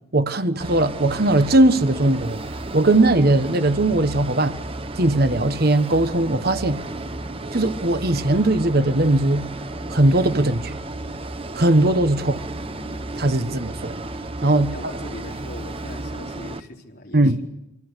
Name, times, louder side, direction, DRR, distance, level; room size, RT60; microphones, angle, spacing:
voice 1, 0.1-4.6 5.0-6.8 7.5-9.5 9.9-10.8 11.5-12.4 13.2-14.0 14.4-14.7 17.1-17.4, right 2 dB, 50° right, 1.2 m, -19 dB
sound 1, 0.6-16.6, right 2 dB, 30° right, 1.0 m, -33 dB
sound 2, 6.0-14.0, equal, 10° left, 4.2 m, -46 dB
voice 2, 14.4-17.5, left 1 dB, 50° left, 4.2 m, -39 dB
25.5 x 25.5 x 8.3 m
head